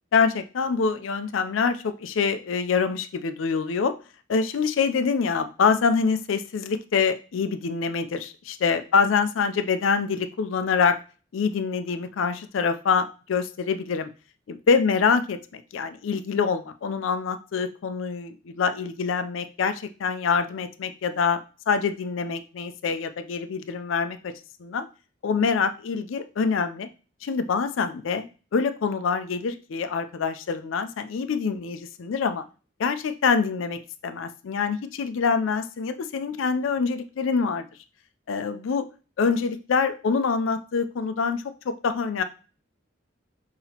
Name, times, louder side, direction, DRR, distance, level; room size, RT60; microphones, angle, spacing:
voice 1, 0.1-3.9 4.3-11.0 11.3-14.1 14.5-24.3 24.6-24.9 25.2-26.9 27.2-32.4 32.8-37.7 38.3-38.9 39.2-42.2, left 5 dB, 85° left, 10 dB, 0.4 m, -25 dB
5.7 x 2.9 x 2.8 m, 0.35 s
head